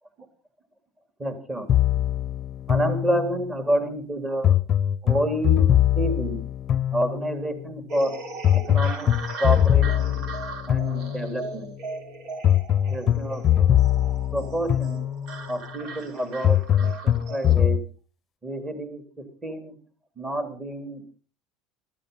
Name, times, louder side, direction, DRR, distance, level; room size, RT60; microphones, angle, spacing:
voice 1, 1.2-1.7 2.7-4.6 5.0-5.6 6.0-6.4 6.9-8.1 8.5-9.1 9.4-10.2 10.7-11.7 12.9-13.4 14.3-15.0 15.5-17.8 18.4-19.0 19.4-19.8 20.2-21.0, right 1 dB, 20° right, 7 dB, 3.9 m, -28 dB
sound 1, 1.7-3.6 4.4-7.5 8.4-11.5 12.4-15.5 16.4-17.8, left 10 dB, 35° left, 0.8 m, -22 dB
sound 2, 7.9-17.6, right 3 dB, 60° right, 3.5 m, -38 dB
14.5 x 13.5 x 5.7 m, 0.39 s
supercardioid pair, 130°, 0 cm